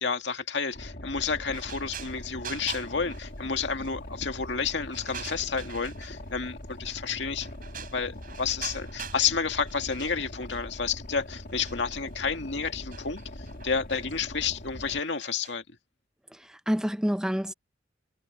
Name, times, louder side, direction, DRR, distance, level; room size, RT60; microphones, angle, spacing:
voice 1, 0.0-7.5 7.9-15.6, left 5 dB, 70° left, 2.1 m, -30 dB
Boat Water vehicle, 0.7-15.0, left 1 dB, 55° left, 2.5 m, -42 dB
sound 1, 1.5-3.9 4.3-6.3 6.8-7.1 7.4-9.3 9.6-10.9 11.5-15.6, right 8 dB, 50° right, 6.3 m, -44 dB
voice 2, 16.3-17.5, equal, 5° right, 0.6 m, -28 dB
head